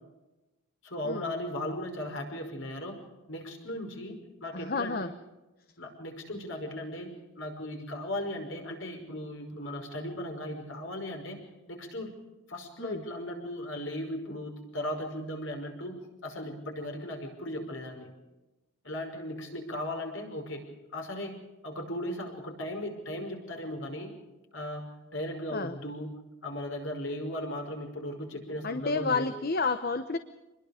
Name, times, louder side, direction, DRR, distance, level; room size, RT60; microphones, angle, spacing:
voice 1, 0.8-3.0 3.3-5.1 5.8-7.1 7.4-12.1 12.5-18.1 18.8-20.6 20.9-24.2 24.5-26.1 26.4-29.3, left 1 dB, 65° left, 3 dB, 5.5 m, -37 dB
voice 2, 4.5-5.1 12.8-13.0 25.5-25.8 28.6-30.2, left 4 dB, 45° left, 9 dB, 0.9 m, -30 dB
26.5 x 21.5 x 5.1 m, 1.0 s
head